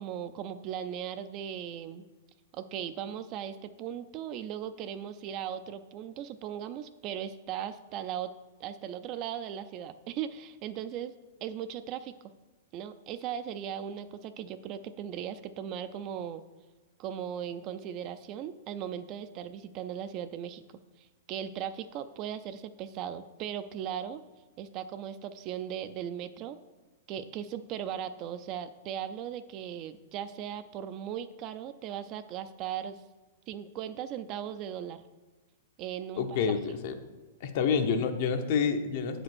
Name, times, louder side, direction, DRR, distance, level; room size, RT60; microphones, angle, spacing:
voice 1, 0.0-2.1 2.5-8.3 8.6-11.1 11.4-12.1 12.7-16.4 17.0-20.6 21.0-24.2 24.6-26.6 27.1-33.0 33.5-35.0 35.8-36.4, right 9 dB, 35° right, 10 dB, 0.4 m, -38 dB
voice 2, 36.2-36.9 37.4-39.2, left 6 dB, 50° left, 7 dB, 0.9 m, -28 dB
8.4 x 5.1 x 6.2 m, 1.2 s
hypercardioid pair, 150°, 0 cm